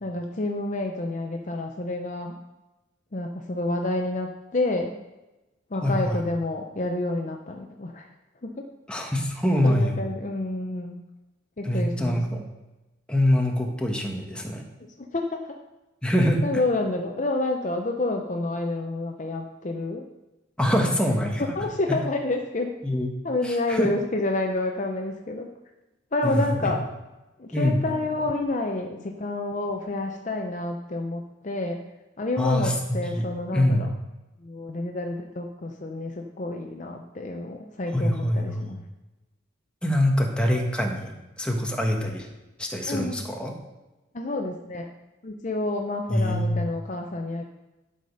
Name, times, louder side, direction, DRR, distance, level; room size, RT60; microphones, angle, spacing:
voice 1, 0.0-2.4 3.1-4.9 5.7-8.1 8.4-8.6 9.6-11.0 11.6-12.4 15.0-15.6 16.4-20.0 20.7-21.2 21.5-22.7 23.2-25.5 26.1-26.9 27.4-31.8 32.2-33.9 34.4-38.8 42.9-43.3 44.1-44.9 45.2-47.4, left 2 dB, 40° left, 3 dB, 0.6 m, -29 dB
voice 2, 5.8-6.2 8.9-10.0 11.6-12.4 13.1-14.6 16.0-16.4 20.6-21.5 21.9-22.0 22.8-23.1 23.4-23.9 26.2-26.7 27.5-27.8 32.4-33.3 33.5-33.9 37.9-38.7 39.8-42.3 42.6-43.5 46.1-46.5, left 1 dB, 5° left, 1 dB, 1.2 m, -24 dB
12.0 x 5.0 x 5.4 m, 1.1 s
head